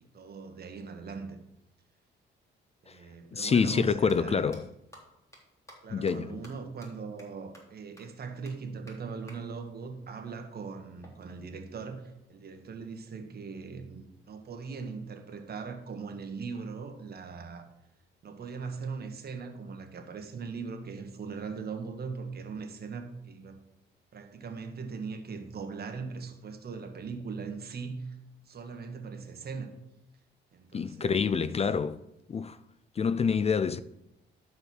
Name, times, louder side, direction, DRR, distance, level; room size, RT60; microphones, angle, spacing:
voice 1, 0.1-1.4 2.8-4.5 5.8-17.7 18.2-23.6 24.1-28.2 28.5-29.7 30.5-31.5, right 5 dB, 50° right, 1.8 m, -40 dB
voice 2, 3.3-4.7 5.9-6.5 30.7-32.0 32.3-32.6 33.0-33.8, left 6 dB, 30° left, 0.4 m, -27 dB
sound 1, 3.7-3.8 4.1-4.2 4.5-4.6 4.9-5.0 5.3-5.4 5.7-5.8 6.1-6.2 6.4-6.5 6.8-6.9 7.2-7.3 7.5-7.6 8.0-8.1 8.4-8.5 8.9-9.0 9.3-9.4 11.0-12.0, equal, 15° left, 3.7 m, -53 dB
12.0 x 5.3 x 6.4 m
cardioid pair, 90°, 20 cm